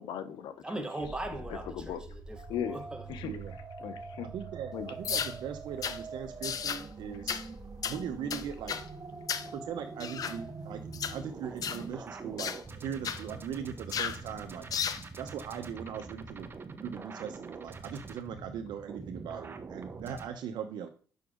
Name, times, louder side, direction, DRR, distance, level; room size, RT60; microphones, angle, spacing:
voice 1, 0.0-0.8 1.5-2.0 2.5-2.8 3.1-3.3 3.8-4.3 4.7-4.9, left 9 dB, 90° left, 1.1 m, -37 dB
voice 2, 0.6-3.0 11.4-11.5, right 2 dB, 10° right, 1.6 m, -39 dB
sound 1, 1.0-20.3, right 4 dB, 30° right, 1.1 m, -44 dB
voice 3, 4.3-7.4 7.9-8.8 9.5-14.7 15.2-20.9, right 8 dB, 80° right, 0.9 m, -40 dB
sound 2, 5.0-5.4 5.8-6.0 6.4-6.8 7.3-7.5 7.8-8.0 8.3-8.9 9.3-9.5 10.0-10.4 10.9-11.2 11.6-11.8 12.4-12.6 13.0-13.2 13.9-14.2 14.7-15.0, left 8 dB, 55° left, 0.8 m, -33 dB
6.8 x 5.9 x 3.8 m
cardioid pair, 105°, 7 cm